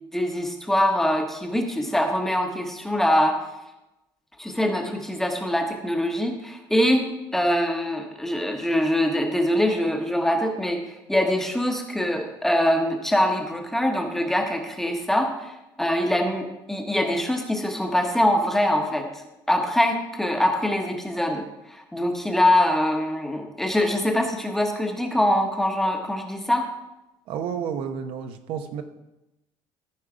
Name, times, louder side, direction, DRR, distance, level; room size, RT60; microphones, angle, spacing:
voice 1, 0.1-3.4 4.4-19.2 19.5-26.7, left 1 dB, 5° left, 3 dB, 1.0 m, -23 dB
voice 2, 27.3-28.8, right 7 dB, 65° right, 7 dB, 0.9 m, -31 dB
14.0 x 5.4 x 4.9 m, 0.97 s
cardioid pair, 160°, 10 cm